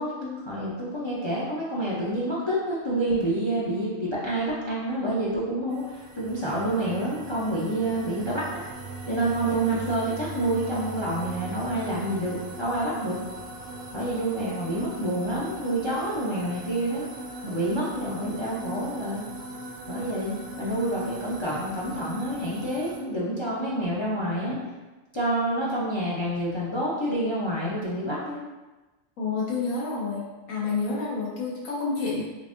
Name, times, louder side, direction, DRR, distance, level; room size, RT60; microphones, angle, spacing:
voice 1, 0.0-8.4 9.1-13.2 13.9-17.1 17.4-19.2 19.9-24.6 25.1-28.4, right 1 dB, 40° left, -6 dB, 0.4 m, -28 dB
sound 1, 5.7-23.0, right 2 dB, 60° right, 0.9 m, -40 dB
voice 2, 29.2-32.2, left 4 dB, 90° left, -6 dB, 1.3 m, -29 dB
3.8 x 3.5 x 2.5 m, 1.2 s
omnidirectional pair, 1.3 m